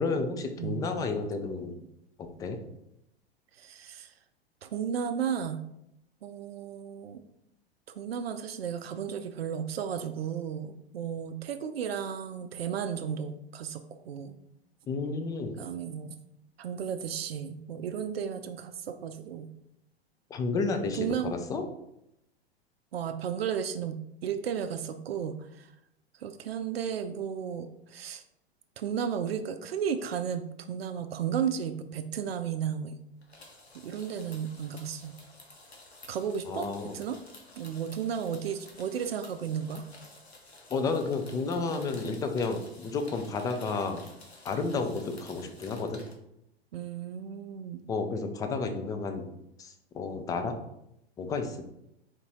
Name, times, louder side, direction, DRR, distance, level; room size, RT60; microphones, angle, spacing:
voice 1, 0.0-1.8 2.2-2.6 14.9-15.6 20.3-21.6 36.5-36.9 40.7-44.0 44.4-46.0 47.9-49.3 49.6-50.6 51.2-51.7, left 4 dB, 10° left, 6 dB, 0.3 m, -31 dB
voice 2, 0.6-0.9 3.6-4.1 4.6-5.6 6.2-7.2 8.0-14.4 15.6-16.2 16.6-19.5 20.9-21.4 22.9-25.7 26.2-28.2 28.8-33.0 33.8-35.2 36.1-36.7 36.9-37.2 37.6-39.8 46.7-47.8, right 8 dB, 70° right, 8 dB, 0.5 m, -34 dB
sound 1, 33.2-46.1, left 2 dB, 90° left, 1.0 m, -52 dB
4.2 x 2.7 x 4.5 m, 0.81 s
figure-of-eight pair, 95°, 31 cm